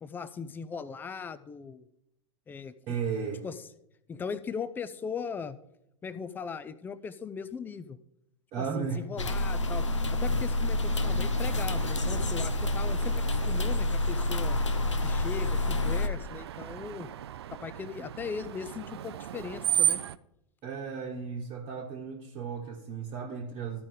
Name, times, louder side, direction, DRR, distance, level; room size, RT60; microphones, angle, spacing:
voice 1, 0.0-1.8 2.5-2.7 3.4-3.5 4.1-5.6 6.0-8.0 8.6-9.9 10.2-14.6 15.0-17.1 17.5-20.0, left 6 dB, 10° left, 15 dB, 0.4 m, -39 dB
voice 2, 2.9-3.4 8.5-9.2 20.6-23.9, right 6 dB, 35° right, -2 dB, 1.2 m, -35 dB
sound 1, 9.2-16.1, left 2 dB, 75° left, 0.6 m, -28 dB
Screech, 10.8-20.2, right 10 dB, 60° right, 0.4 m, -36 dB
13.5 x 5.1 x 3.7 m, 0.79 s
figure-of-eight pair, 95°, 16 cm